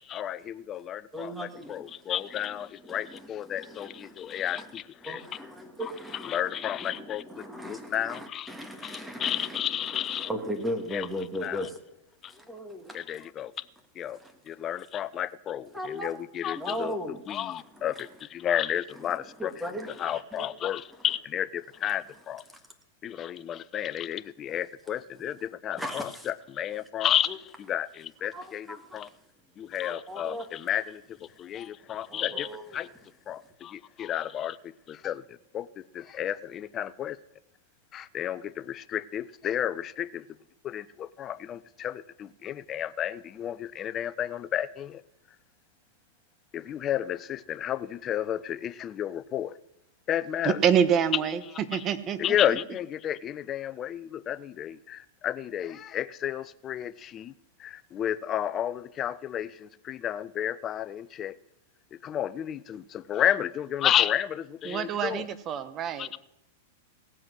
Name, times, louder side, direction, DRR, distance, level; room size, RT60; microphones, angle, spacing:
voice 1, 0.0-5.3 5.8-7.2 7.7-8.5 8.8-10.3 10.9-11.7 12.2-12.3 12.9-13.5 14.0-14.2 14.5-19.7 20.0-22.4 23.0-29.1 29.6-31.0 31.4-32.9 33.3-35.2 35.5-35.7 35.9-37.2 37.9-40.2 40.6-45.0 46.5-49.6 50.1-50.6 51.7-51.9 52.2-57.3 57.6-61.4 62.0-65.3 66.0-66.2, left 10 dB, 30° left, 0.6 m, -32 dB
voice 2, 1.1-1.9 2.3-4.7 5.0-11.8 12.3-13.0 14.2-14.4 15.7-16.1 16.5-17.2 17.8-18.1 19.0-20.5 25.8-26.3 27.3-27.4 28.3-29.0 29.8-30.5 32.0-32.8, equal, 5° right, 1.7 m, -38 dB
voice 3, 50.4-51.4 51.7-52.4 64.6-66.1, right 8 dB, 30° right, 1.2 m, -26 dB
17.5 x 7.8 x 6.2 m
hypercardioid pair, 120°, 0 cm